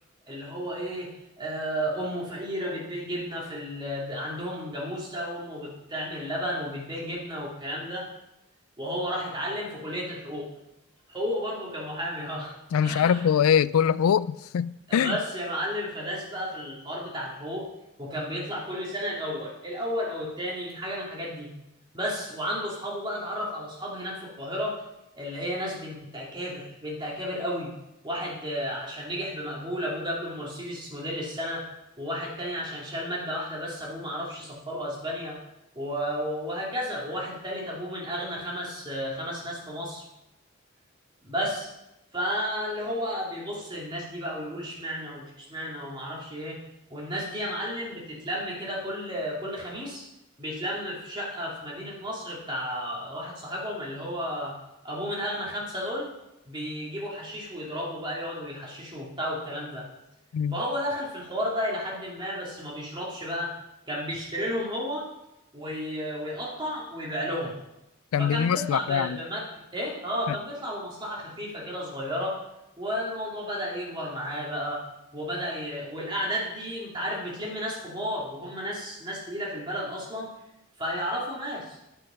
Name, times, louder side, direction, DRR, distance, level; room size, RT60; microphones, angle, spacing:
voice 1, 0.3-1.1 1.4-8.1 8.8-10.5 11.1-12.5 12.8-13.3 14.9-17.7 18.0-21.5 21.9-24.8 25.1-27.7 28.0-31.6 32.0-35.4 35.7-40.0 41.2-41.7 42.1-46.6 46.9-50.0 50.4-54.5 54.8-56.1 56.4-59.9 60.5-63.5 63.9-65.1 65.5-67.5 68.2-69.5 69.7-72.4 72.8-74.8 75.1-80.3 80.8-81.8, equal, 20° right, -4 dB, 2.7 m, -32 dB
voice 2, 12.7-15.2 60.3-60.6 68.1-69.2 70.3-70.4, left 8 dB, 80° left, 19 dB, 0.3 m, -23 dB
10.0 x 6.5 x 5.7 m, 0.90 s
head